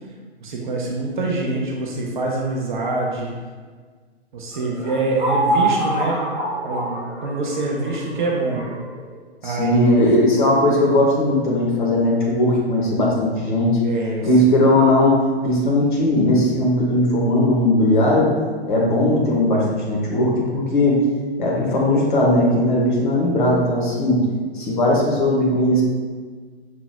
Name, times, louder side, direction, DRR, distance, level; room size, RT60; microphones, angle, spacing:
voice 1, 0.4-3.3 4.3-6.2 6.6-8.6 9.4-10.2 13.8-14.3, right 2 dB, 45° right, -1 dB, 0.6 m, -25 dB
sound 1, 4.5-9.1, right 1 dB, 5° right, 0.8 m, -25 dB
voice 2, 9.4-13.8 14.2-18.3 18.7-21.0 21.4-24.3 24.5-25.8, left 1 dB, 50° left, -3 dB, 1.0 m, -18 dB
5.9 x 2.9 x 2.3 m, 1.5 s
figure-of-eight pair, 120°, 33 cm